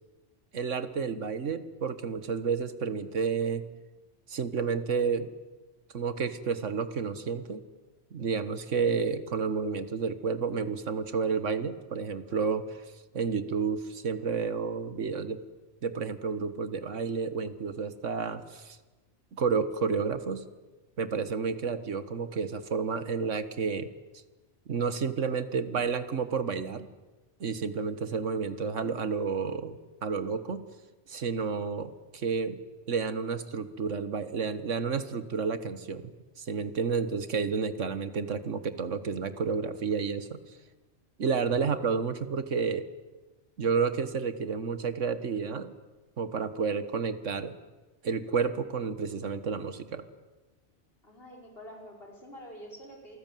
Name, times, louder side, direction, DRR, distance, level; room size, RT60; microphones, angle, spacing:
voice 1, 0.5-3.6 4.3-5.3 5.9-7.6 8.1-12.8 13.1-15.4 15.8-18.8 19.3-20.4 21.0-23.9 24.7-26.9 27.4-30.6 31.1-32.6 32.9-36.1 36.4-40.4 41.2-42.9 43.6-45.7 46.2-47.6 48.0-50.1, right 5 dB, 85° right, 12 dB, 1.8 m, -30 dB
voice 2, 51.0-53.2, equal, 50° left, 1 dB, 5.4 m, -47 dB
27.5 x 19.5 x 9.2 m, 1.2 s
omnidirectional pair, 1.2 m